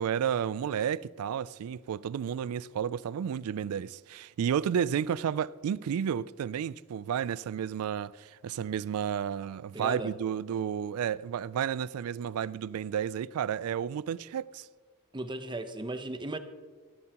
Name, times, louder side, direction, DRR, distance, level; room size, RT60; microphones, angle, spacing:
voice 1, 0.0-14.7, right 8 dB, 80° right, 0.3 m, -32 dB
voice 2, 9.7-10.1 15.1-16.4, right 1 dB, 20° right, 0.7 m, -36 dB
18.0 x 12.0 x 2.9 m
head